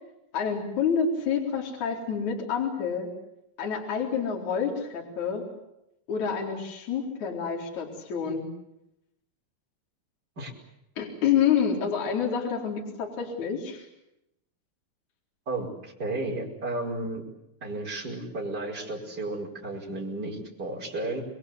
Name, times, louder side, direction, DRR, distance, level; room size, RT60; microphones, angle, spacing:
voice 1, 0.3-3.1 3.6-5.4 6.1-8.5 11.0-13.9, left 7 dB, 40° left, 1 dB, 4.9 m, -28 dB
voice 2, 15.5-17.2 17.6-21.2, right 2 dB, 20° right, -2 dB, 5.1 m, -33 dB
28.0 x 22.0 x 8.2 m, 0.83 s
omnidirectional pair, 5.7 m